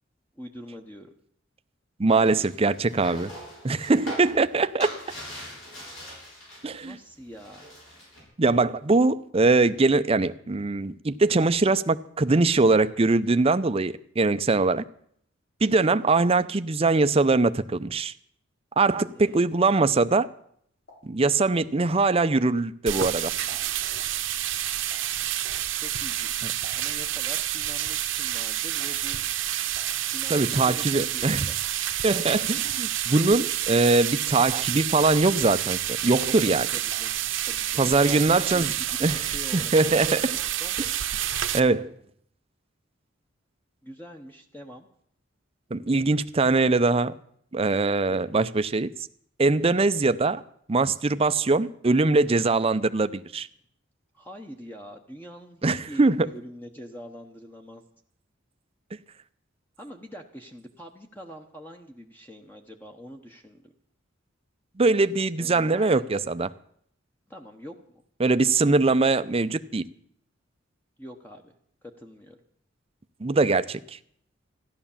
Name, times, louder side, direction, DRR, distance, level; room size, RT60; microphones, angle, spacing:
voice 1, 0.3-1.1 6.8-7.6 19.1-19.8 25.8-29.2 29.6-29.7 30.0-31.3 36.4-40.7 43.8-44.9 48.1-48.2 54.1-57.8 59.8-63.7 65.4-66.3 67.3-68.0 71.0-71.5 71.8-72.4, equal, 10° left, 1.0 m, -44 dB
voice 2, 2.0-3.3 3.6-4.9 6.6-7.0 8.4-14.8 15.6-18.1 18.8-20.3 21.0-23.3 30.3-31.5 32.0-36.7 37.8-38.7 39.0-39.2 39.5-40.3 41.5-41.9 45.7-47.1 47.5-48.9 49.4-50.4 50.7-53.5 55.6-56.3 64.8-66.5 68.2-69.8 73.2-74.0, right 3 dB, 30° right, 0.6 m, -22 dB
sound 1, 2.1-6.9 7.2-8.2, equal, 75° left, 7.3 m, -41 dB
sound 2, 20.5-22.9 23.2-27.2 27.4-34.7 35.0-35.6 36.1-37.8 38.1-39.2 39.4-39.5 39.8-39.9, left 1 dB, 90° left, 6.2 m, -55 dB
sound 3, 22.9-41.6, right 12 dB, 75° right, 1.0 m, -29 dB
14.5 x 11.0 x 7.2 m
head